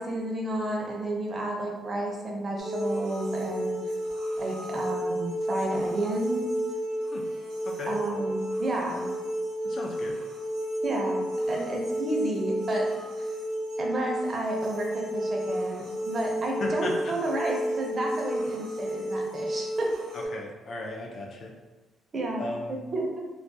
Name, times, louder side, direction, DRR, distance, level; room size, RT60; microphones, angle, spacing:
voice 1, 0.0-3.8 4.4-6.5 7.9-9.1 10.8-12.9 13.2-13.3 13.8-19.9 22.1-23.2, right 1 dB, 30° right, -1 dB, 0.5 m, -31 dB
sound 1, 2.6-20.3, right 1 dB, 80° right, 0.7 m, -31 dB
voice 2, 9.6-10.2 16.6-17.1 20.1-21.5 22.4-22.7, left 2 dB, 50° left, 0 dB, 0.4 m, -36 dB
2.3 x 2.2 x 2.6 m, 1.2 s
cardioid pair, 135°, 0 cm